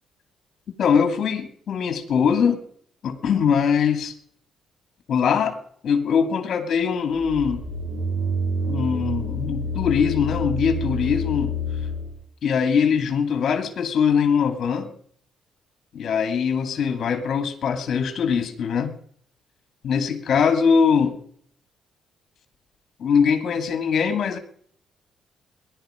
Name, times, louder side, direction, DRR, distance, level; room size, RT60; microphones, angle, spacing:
voice 1, 0.8-2.6 3.0-4.1 5.1-5.6 5.8-7.7 8.7-11.5 12.4-14.9 15.9-19.0 19.8-21.2 23.0-24.4, left 6 dB, 60° left, 8 dB, 2.6 m, -22 dB
sound 1, 7.1-12.2, equal, 90° right, 5.9 m, -28 dB
19.0 x 11.5 x 5.1 m, 0.62 s
cardioid pair, 90°, 0 cm